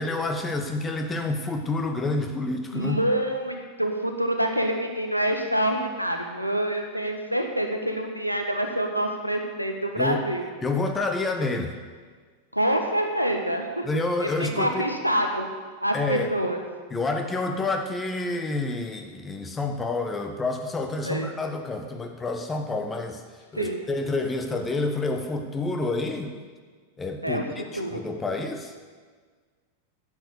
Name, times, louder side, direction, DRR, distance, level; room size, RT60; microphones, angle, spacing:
voice 1, 0.0-3.0 10.0-10.2 10.6-11.7 13.8-14.9 15.9-16.4 16.9-23.2 23.5-26.3 27.0-28.8, left 3 dB, 15° left, 5 dB, 1.2 m, -28 dB
voice 2, 2.7-10.5 12.5-13.8 14.2-15.5 15.8-16.6 21.0-21.3 23.5-23.8 27.2-27.4 27.7-28.0, right 1 dB, 90° right, 3 dB, 1.4 m, -26 dB
11.0 x 8.0 x 7.0 m, 1.5 s
figure-of-eight pair, 90°, 0 cm